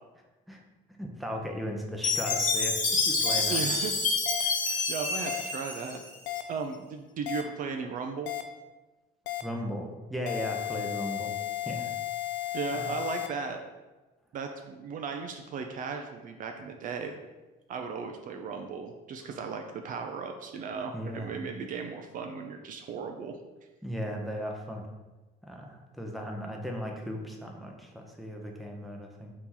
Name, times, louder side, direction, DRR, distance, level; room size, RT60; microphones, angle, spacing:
voice 1, 1.0-3.6 4.4-4.8 9.4-11.3 11.7-11.9 12.7-12.9 20.9-21.3 23.8-24.8 25.5-29.3, equal, ahead, 0 dB, 0.6 m, -37 dB
Chime, 2.0-6.4, left 3 dB, 50° left, 1.0 m, -28 dB
sound 1, 2.3-2.4 3.3-3.4 4.3-4.4 5.3-5.4 6.3-6.4 7.3-7.4 8.3-8.4 9.3-9.4 10.3-13.3, left 14 dB, 90° left, 0.4 m, -34 dB
voice 2, 3.5-3.9 4.9-6.0 6.5-8.3 12.5-13.6 14.3-17.2 17.7-23.4, right 5 dB, 50° right, 4 dB, 0.4 m, -36 dB
4.1 x 2.9 x 3.7 m, 1.2 s
cardioid pair, 110°, 17 cm